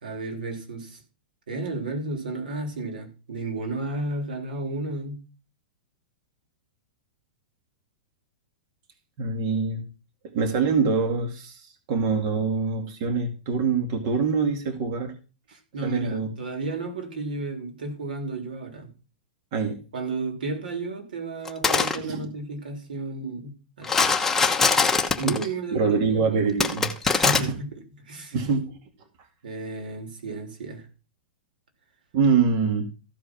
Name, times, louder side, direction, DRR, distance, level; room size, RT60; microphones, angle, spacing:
voice 1, 0.0-1.0 1.5-5.2 15.5-18.9 19.9-24.1 25.2-28.4 29.4-30.8, right 3 dB, 90° right, 3.2 m, -33 dB
voice 2, 9.2-9.8 10.3-11.6 11.9-15.1 15.8-16.3 19.5-19.8 22.1-22.3 25.2-25.3 25.7-26.9 27.2-27.3 28.3-28.7 32.1-32.9, right 5 dB, 45° right, 2.2 m, -24 dB
sound 1, 21.5-22.0 23.8-25.5 26.6-27.4, left 4 dB, 10° left, 1.0 m, -21 dB
14.5 x 5.0 x 6.0 m
hypercardioid pair, 150°, 5 cm